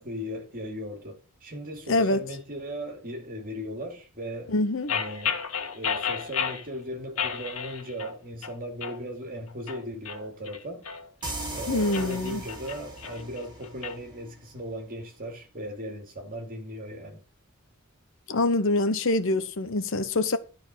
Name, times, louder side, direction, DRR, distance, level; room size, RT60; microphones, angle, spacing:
voice 1, 0.0-4.5 4.9-5.4 5.7-10.9 11.5-17.2, equal, 40° right, 2.4 m, -37 dB
voice 2, 1.9-2.2 4.5-4.9 11.7-12.4 18.3-20.4, left 2 dB, 65° left, 0.9 m, -25 dB
sound 1, 4.9-6.7 7.2-8.2 8.4-9.0 9.5-11.3 11.8-14.0, left 7 dB, 85° left, 1.7 m, -32 dB
sound 2, 11.2-14.7, right 2 dB, 20° right, 3.2 m, -39 dB
12.0 x 4.4 x 6.6 m
head